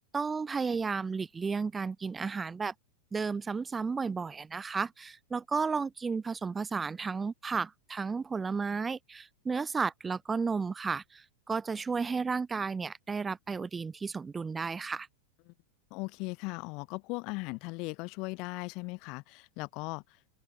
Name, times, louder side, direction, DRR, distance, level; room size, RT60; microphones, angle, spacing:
voice 1, 0.1-2.7 3.1-15.1, right 5 dB, 15° right, 7.6 m, -33 dB
voice 2, 15.9-20.0, left 28 dB, 45° left, 5.5 m, -38 dB
figure-of-eight pair, 90°, 0 cm